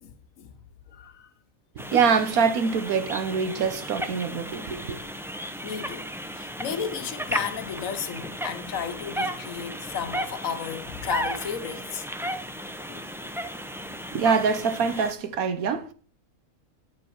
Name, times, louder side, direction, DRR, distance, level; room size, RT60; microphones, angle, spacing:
voice 1, 0.0-0.6 0.9-1.3 5.6-6.1 6.3-12.1 12.9-13.3, left 7 dB, 65° left, 1.3 m, -33 dB
sound 1, 1.8-15.1, equal, 5° right, 0.4 m, -35 dB
voice 2, 1.9-5.0 14.1-15.9, right 5 dB, 75° right, 1.4 m, -24 dB
9.1 x 7.7 x 4.6 m
omnidirectional pair, 1.5 m